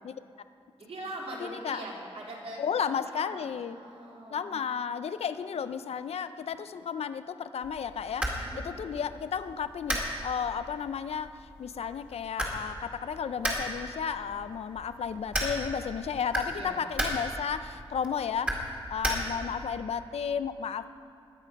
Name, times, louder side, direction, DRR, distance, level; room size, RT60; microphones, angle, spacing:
voice 1, 0.8-2.6 3.0-3.4 3.7-4.5 8.4-8.6 16.5-16.8, right 1 dB, 75° right, -3 dB, 3.0 m, -41 dB
voice 2, 1.4-1.8 2.6-3.8 4.3-18.6 18.9-20.9, left 7 dB, 80° left, 12 dB, 0.5 m, -33 dB
sound 1, 7.6-19.7, equal, 10° right, 2.0 m, -36 dB
21.0 x 8.5 x 5.3 m, 2.5 s
wide cardioid pair, 170°, 10 cm